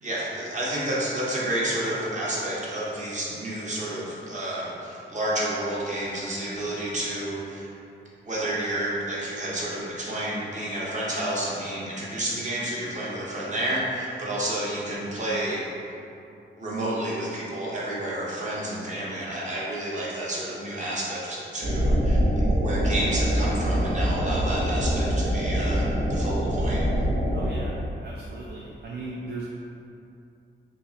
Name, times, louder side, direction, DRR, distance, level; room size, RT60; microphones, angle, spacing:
voice 1, 0.0-7.7 8.2-15.6 16.5-25.8 26.1-26.8, right 1 dB, 35° right, -7 dB, 0.8 m, -30 dB
sound 1, 21.6-27.5, equal, 75° right, 0.8 m, -24 dB
voice 2, 27.3-29.4, right 2 dB, 55° right, -4 dB, 0.4 m, -37 dB
5.2 x 2.0 x 2.8 m, 2.7 s
wide cardioid pair, 135°, 21 cm